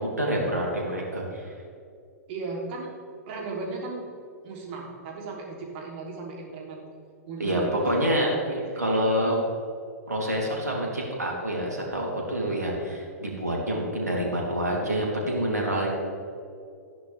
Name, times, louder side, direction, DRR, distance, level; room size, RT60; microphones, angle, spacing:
voice 1, 0.0-1.5 7.4-8.3 8.8-9.4 10.1-15.9, equal, 80° right, -2 dB, 3.3 m, -27 dB
voice 2, 2.3-2.9 3.3-4.0 4.4-6.8 7.3-9.3, right 3 dB, 45° right, -2 dB, 3.2 m, -36 dB
14.0 x 10.5 x 3.5 m, 2.4 s
figure-of-eight pair, 105°, 9 cm